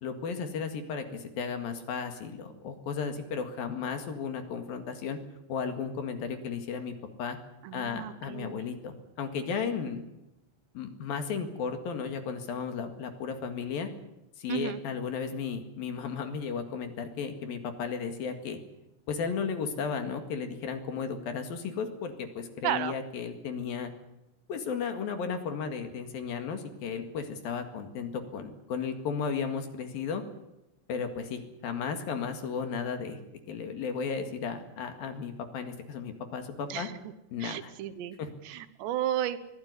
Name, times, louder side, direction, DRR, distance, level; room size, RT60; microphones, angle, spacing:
voice 1, 0.0-5.2 5.5-6.9 7.2-7.4 7.7-10.0 10.8-13.9 14.4-18.6 19.1-23.9 24.5-30.2 30.9-33.2 33.5-36.9 37.3-37.7 38.2-38.3, left 6 dB, 60° left, 7 dB, 3.5 m, -34 dB
voice 2, 7.6-8.6 14.5-14.8 22.6-22.9 36.7-37.1 37.4-38.2 38.4-39.4, right 12 dB, 80° right, 13 dB, 3.4 m, -33 dB
23.0 x 15.5 x 9.8 m, 0.91 s
omnidirectional pair, 5.0 m